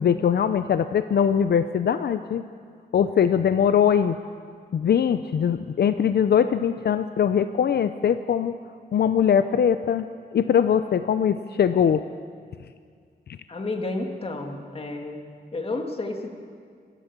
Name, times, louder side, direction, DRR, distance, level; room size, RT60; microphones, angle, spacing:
voice 1, 0.0-2.4 2.9-4.2 4.7-8.6 8.9-10.1 10.3-12.0, left 8 dB, 75° left, 11 dB, 0.6 m, -21 dB
voice 2, 13.5-15.2 15.5-16.3, left 2 dB, 35° left, 3 dB, 2.1 m, -31 dB
27.0 x 12.0 x 8.2 m, 2.1 s
wide cardioid pair, 155°, 17 cm